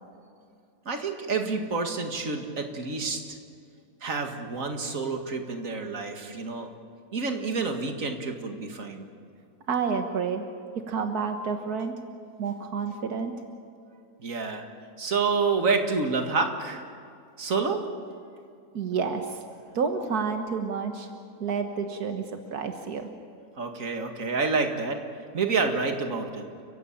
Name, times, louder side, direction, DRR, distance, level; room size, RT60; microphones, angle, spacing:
voice 1, 0.9-3.4 4.0-6.7 7.1-9.1 14.2-14.7 15.0-16.8 17.4-17.8 23.6-25.0 25.3-26.4, right 4 dB, 60° right, 5 dB, 2.4 m, -28 dB
voice 2, 9.7-10.4 10.8-11.9 12.4-13.3 18.7-19.4 19.8-21.1 21.4-22.2 22.5-23.1, right 5 dB, 85° right, 5 dB, 1.9 m, -29 dB
30.0 x 15.5 x 8.7 m, 2.4 s
omnidirectional pair, 1.6 m